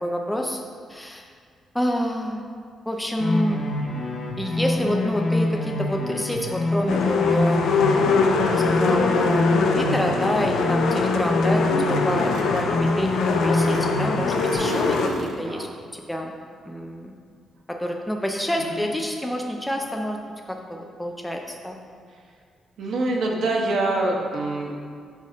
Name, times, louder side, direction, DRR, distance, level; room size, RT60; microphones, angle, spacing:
voice 1, 0.0-0.6 0.9-1.3 1.7-2.5 2.9-3.6 4.4-7.8 8.5-16.3 16.7-17.1 17.7-20.2 20.5-21.8, equal, 5° left, 2 dB, 0.4 m, -28 dB
sound 1, 3.2-14.5, left 2 dB, 50° left, 0.9 m, -26 dB
sound 2, 6.9-15.1, left 4 dB, 80° left, 0.7 m, -23 dB
sound 3, 11.8-12.0 12.2-14.0 14.3-15.5, right 4 dB, 85° right, 0.6 m, -35 dB
voice 2, 15.4-15.7 18.6-18.8 22.8-24.7, right 2 dB, 55° right, 0 dB, 0.9 m, -25 dB
6.4 x 5.3 x 4.9 m, 2.1 s
cardioid pair, 175°, 0 cm